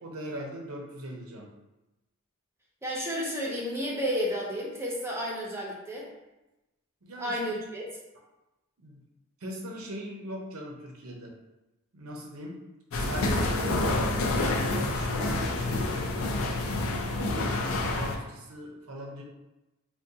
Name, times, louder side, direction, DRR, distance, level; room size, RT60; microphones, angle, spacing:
voice 1, 0.0-1.5 7.0-7.4 8.8-9.0 9.4-11.4 11.9-12.6 12.9-14.0 14.5-16.1 17.1-19.2, right 1 dB, 80° right, 0 dB, 0.6 m, -40 dB
voice 2, 2.8-6.1 7.2-7.9, equal, 10° right, -3 dB, 0.5 m, -31 dB
sound 1, 12.9-18.2, left 2 dB, 75° left, 0.5 m, -28 dB
3.7 x 2.2 x 2.7 m, 1.0 s
head